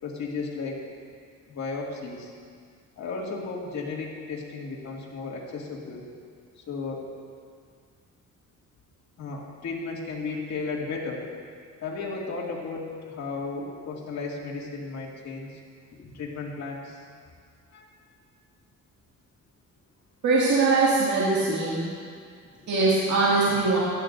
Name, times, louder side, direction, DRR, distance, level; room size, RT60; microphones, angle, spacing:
voice 1, 0.0-0.9 1.5-2.3 3.0-6.0 6.6-7.1 9.2-11.3 11.8-15.6 15.9-17.0 17.7-17.9 22.5-22.6, left 4 dB, 65° left, -3 dB, 2.3 m, -34 dB
voice 2, 20.2-21.9 22.7-23.8, right 3 dB, 65° right, -8 dB, 2.3 m, -22 dB
15.5 x 12.0 x 2.6 m, 2.2 s
cardioid pair, 90°, 30 cm